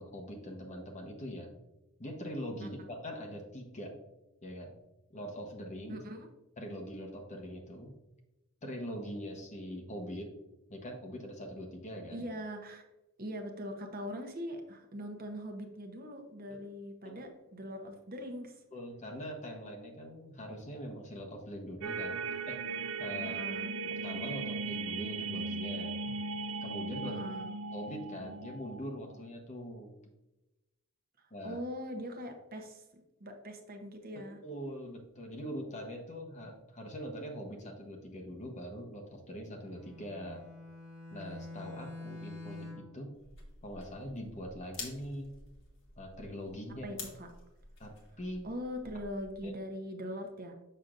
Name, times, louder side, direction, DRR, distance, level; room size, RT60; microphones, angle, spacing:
voice 1, 0.0-1.5 2.0-3.9 4.4-4.7 5.1-6.0 6.6-7.9 8.6-10.3 10.7-12.2 17.0-17.1 18.7-22.6 23.0-23.4 24.0-26.2 26.6-27.2 27.7-29.9 31.3-31.6 34.4-40.4 41.1-43.1 43.6-45.3 46.0-46.9 47.8-48.5 49.4-49.5, equal, 35° left, 2 dB, 1.0 m, -42 dB
voice 2, 5.9-6.3 12.1-12.8 13.2-18.6 23.2-23.7 27.0-27.5 31.4-32.8 33.2-34.4 46.8-47.3 48.4-50.5, equal, 40° right, 4 dB, 0.8 m, -41 dB
sound 1, 21.8-29.1, right 4 dB, 85° right, 0.4 m, -38 dB
Bowed string instrument, 39.6-43.0, left 2 dB, 80° left, 2.0 m, -46 dB
sound 2, 43.2-49.5, left 3 dB, 60° left, 1.5 m, -50 dB
6.6 x 5.9 x 2.5 m, 0.97 s
head